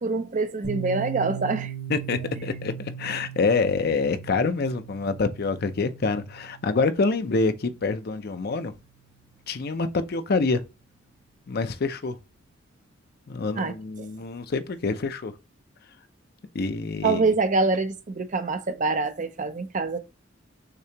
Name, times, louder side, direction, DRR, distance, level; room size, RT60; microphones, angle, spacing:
voice 1, 0.0-1.7 13.6-14.1 17.0-20.0, right 3 dB, 40° right, 0.6 m, -25 dB
Piano, 0.6-8.1, right 10 dB, 85° right, 1.8 m, -39 dB
voice 2, 1.9-8.7 9.5-10.6 11.5-12.2 13.3-15.3 16.5-17.2, left 4 dB, 55° left, 0.5 m, -26 dB
6.6 x 2.8 x 2.8 m
head